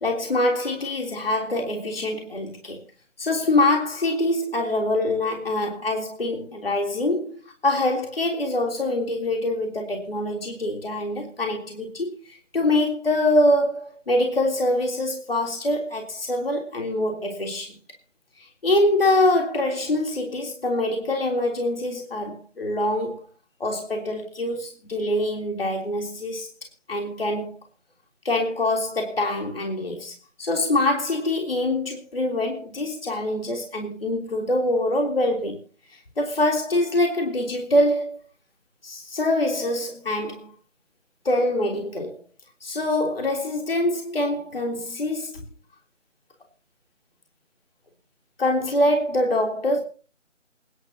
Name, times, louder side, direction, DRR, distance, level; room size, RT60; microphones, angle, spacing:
voice 1, 0.0-2.8 3.2-7.4 7.6-17.7 18.4-23.3 23.6-26.5 26.9-27.6 28.2-35.6 35.9-38.2 38.8-40.5 41.2-42.2 42.6-45.3 48.4-49.8, left 1 dB, 50° left, 3.4 m, -24 dB
27.5 x 10.5 x 2.9 m
figure-of-eight pair, 165°, 38 cm